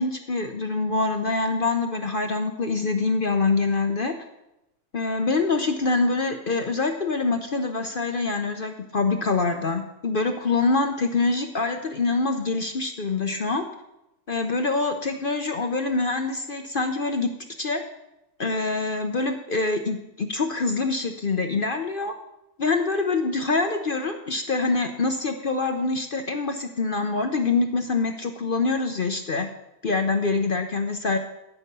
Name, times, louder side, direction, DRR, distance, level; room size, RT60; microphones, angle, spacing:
voice 1, 0.0-4.1 4.9-13.6 14.3-17.3 17.6-17.8 18.4-22.1 22.6-29.5 29.8-31.2, left 3 dB, 45° left, 6 dB, 0.7 m, -25 dB
14.5 x 5.8 x 6.7 m, 0.90 s
omnidirectional pair, 1.7 m